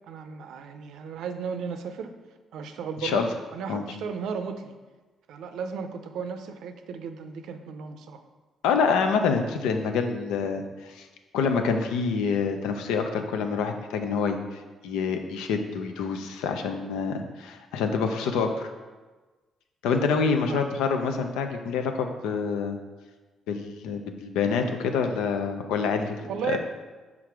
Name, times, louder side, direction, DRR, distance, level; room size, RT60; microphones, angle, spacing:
voice 1, 0.1-2.2 2.5-3.3 3.5-4.7 5.3-8.2 20.5-20.7 26.2-26.6, right 6 dB, 80° right, 7 dB, 0.5 m, -35 dB
voice 2, 8.6-11.1 11.3-18.7 19.8-22.8 23.5-26.2 26.4-26.6, left 5 dB, 90° left, 5 dB, 0.6 m, -27 dB
5.9 x 3.8 x 4.7 m, 1.3 s
cardioid pair, 75°, 0 cm